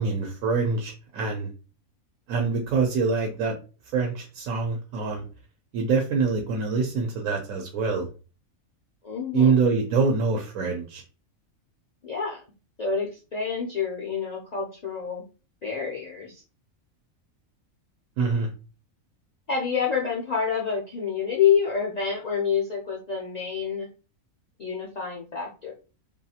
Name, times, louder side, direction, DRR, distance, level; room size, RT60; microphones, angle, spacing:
voice 1, 0.0-1.5 2.3-3.5 3.9-5.2 5.7-8.1 9.3-11.0 18.2-18.5, right 4 dB, 75° right, 2 dB, 1.0 m, -25 dB
voice 2, 9.0-9.6 12.0-12.4 12.8-15.2 15.6-16.4 19.5-23.9 24.6-25.7, left 6 dB, 70° left, -4 dB, 0.4 m, -27 dB
2.6 x 2.4 x 2.7 m, 0.34 s
omnidirectional pair, 1.4 m